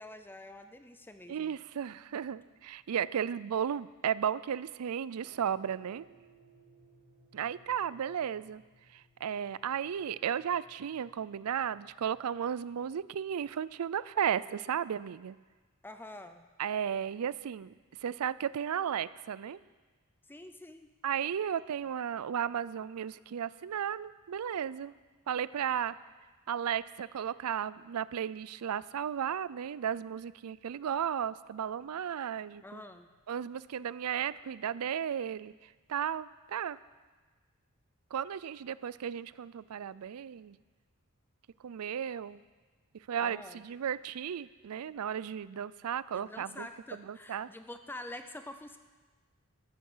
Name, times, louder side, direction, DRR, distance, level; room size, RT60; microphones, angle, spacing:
voice 1, 0.0-1.6 15.8-16.5 20.3-20.9 32.6-33.1 43.2-43.6 46.1-48.8, left 1 dB, 10° left, 8 dB, 0.5 m, -46 dB
voice 2, 1.3-6.1 7.3-8.6 8.9-15.4 16.6-17.7 18.0-19.6 21.0-24.9 25.3-26.0 26.5-32.8 33.3-35.5 35.9-36.8 38.1-40.6 41.6-42.4 42.9-46.7 47.0-47.5, right 8 dB, 85° right, 18 dB, 0.4 m, -34 dB
sound 1, 5.2-13.7, right 2 dB, 45° right, 5.3 m, -64 dB
13.0 x 13.0 x 5.6 m, 1.3 s
head